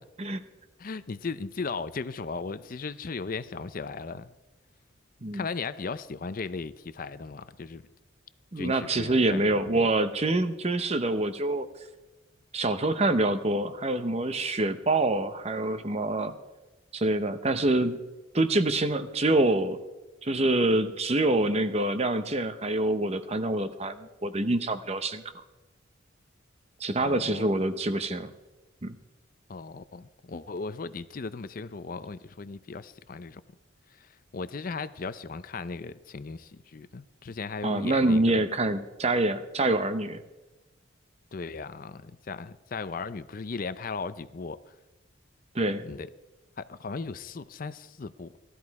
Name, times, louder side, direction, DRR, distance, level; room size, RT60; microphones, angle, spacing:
voice 1, 0.8-4.3 5.3-7.8 8.6-9.9 27.0-27.7 29.5-33.4 33.9-38.4 41.3-44.7 45.8-46.1 46.6-48.4, left 4 dB, 45° left, 14 dB, 0.5 m, -37 dB
voice 2, 8.5-11.7 12.5-16.3 16.9-18.0 18.3-19.8 20.2-25.2 26.8-28.3 28.8-29.0 37.6-40.2 45.5-45.8, right 2 dB, 30° right, 10 dB, 0.9 m, -26 dB
17.5 x 13.0 x 4.8 m, 1.1 s
head